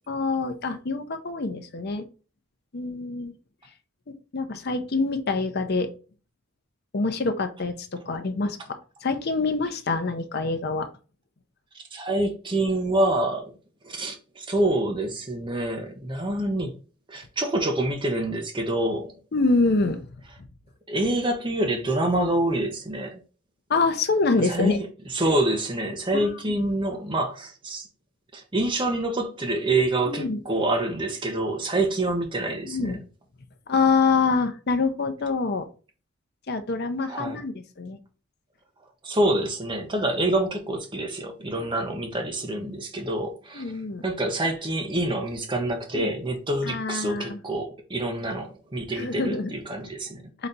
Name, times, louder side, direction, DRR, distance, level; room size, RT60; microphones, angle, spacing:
voice 1, 0.1-2.0 2.7-3.3 4.1-5.9 6.9-10.9 19.3-20.1 23.7-24.8 26.1-26.3 30.1-30.4 32.6-33.0 33.7-35.7 36.5-38.0 41.6-41.7 43.5-44.0 45.9-46.1 46.6-47.4 49.0-49.5 50.4-50.5, left 3 dB, 50° left, 0.6 m, -26 dB
voice 2, 11.7-13.5 13.8-16.7 17.1-19.1 20.9-23.2 24.4-24.8 25.1-27.9 28.3-33.0 37.1-37.4 39.0-43.6 44.0-50.2, right 1 dB, 25° right, 0.8 m, -26 dB
4.0 x 3.3 x 4.0 m
head